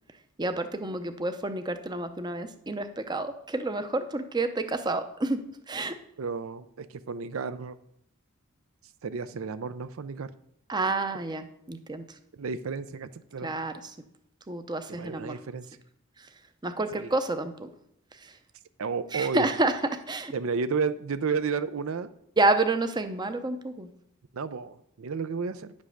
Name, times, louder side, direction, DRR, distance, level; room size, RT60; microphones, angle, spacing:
voice 1, 0.4-5.4 5.7-6.0 10.7-12.0 13.4-14.0 14.5-15.4 16.2-16.3 16.6-17.7 18.2-18.3 19.1-20.3 22.4-23.9, right 2 dB, 20° right, 8 dB, 0.6 m, -29 dB
voice 2, 6.2-7.8 9.0-10.3 12.4-13.5 14.9-15.7 16.9-17.1 18.8-19.5 20.3-22.1 24.3-25.7, right 5 dB, 70° right, 12 dB, 0.5 m, -32 dB
9.9 x 5.4 x 6.3 m, 0.73 s
head